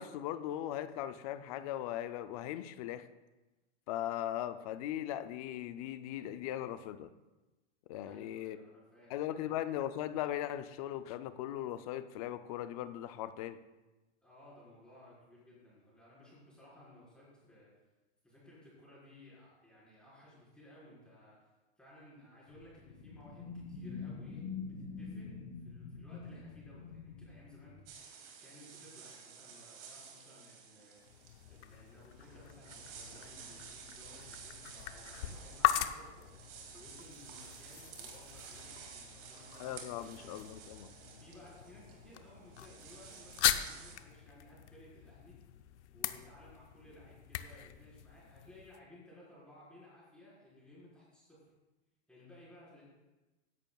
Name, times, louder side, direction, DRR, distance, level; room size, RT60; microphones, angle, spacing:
voice 1, 0.0-3.1 3.9-7.1 7.9-8.6 9.1-13.6 39.6-40.9, left 12 dB, 35° left, 11 dB, 0.4 m, -39 dB
voice 2, 8.0-9.6 14.2-17.7 18.2-21.4 21.8-28.1 28.4-31.0 31.5-36.2 36.7-40.3 41.2-45.4 45.9-51.5 52.1-52.8, left 1 dB, 5° left, -8 dB, 4.4 m, -58 dB
sound 1, 22.5-27.9, left 5 dB, 55° left, 2.5 m, -45 dB
sound 2, 27.9-43.9, right 6 dB, 55° right, 2.4 m, -53 dB
sound 3, 31.0-48.8, left 12 dB, 80° left, 0.8 m, -40 dB
16.5 x 11.0 x 2.3 m, 1.1 s
supercardioid pair, 160°, 34 cm